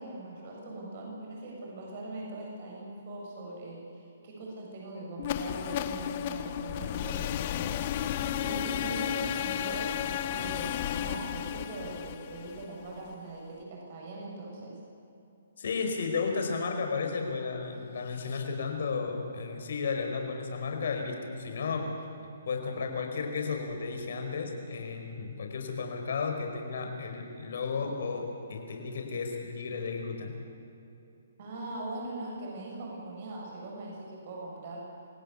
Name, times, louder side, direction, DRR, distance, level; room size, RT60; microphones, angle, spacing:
voice 1, 0.0-7.8 8.4-10.7 11.0-14.8 31.4-34.9, right 2 dB, 45° right, -2 dB, 7.8 m, -41 dB
sound 1, 5.2-13.1, left 10 dB, 40° left, 0.9 m, -33 dB
voice 2, 15.6-21.9 22.4-30.3, left 4 dB, 65° left, 4 dB, 4.8 m, -33 dB
26.5 x 17.0 x 8.4 m, 2.8 s
hypercardioid pair, 155°, 0 cm